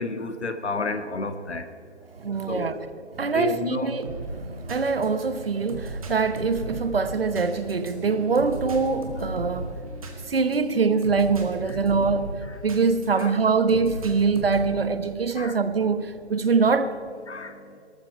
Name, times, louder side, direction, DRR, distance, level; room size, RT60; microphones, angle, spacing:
voice 1, 0.0-1.6 2.5-2.7 3.2-3.9 13.1-13.3 15.4-15.6 17.3-17.6, left 3 dB, 70° left, 9 dB, 1.7 m, -30 dB
voice 2, 2.2-2.8 3.1-4.0 4.3-9.7 10.3-12.3 12.6-16.9, right 4 dB, 55° right, 11 dB, 1.2 m, -24 dB
sound 1, 4.0-13.3 13.7-14.8, right 2 dB, 30° right, 1.9 m, -36 dB
19.0 x 14.0 x 4.5 m, 2.5 s
hypercardioid pair, 175°, 35 cm